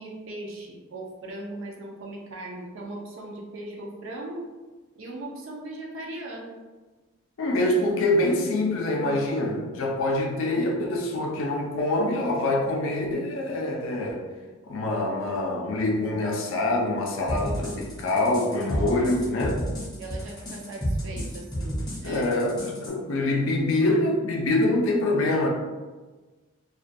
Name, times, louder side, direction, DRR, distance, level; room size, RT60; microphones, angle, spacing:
voice 1, 0.0-4.5 5.0-6.6 20.0-22.4, right 1 dB, 70° right, -1 dB, 0.4 m, -38 dB
voice 2, 7.4-14.2 14.7-19.6 22.0-25.5, left 2 dB, 70° left, 0 dB, 0.4 m, -25 dB
sound 1, 17.3-22.9, equal, 20° left, 0.5 m, -31 dB
2.3 x 2.2 x 2.6 m, 1.3 s
head